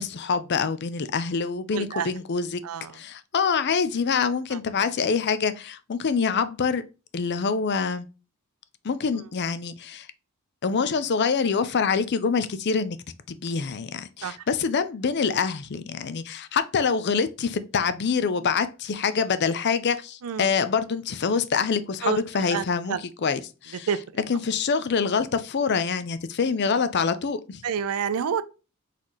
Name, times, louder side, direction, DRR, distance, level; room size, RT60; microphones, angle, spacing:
voice 1, 0.0-2.6 2.9-6.8 7.1-8.1 8.8-10.1 10.6-13.0 13.3-23.9 24.3-27.6, left 5 dB, 50° left, 0.5 m, -25 dB
voice 2, 1.7-2.1 2.6-2.9 14.2-14.3 20.2-20.5 22.0-22.2 22.5-23.0 23.9-24.0 27.6-28.4, right 7 dB, 75° right, 0.5 m, -27 dB
4.1 x 4.1 x 3.0 m
head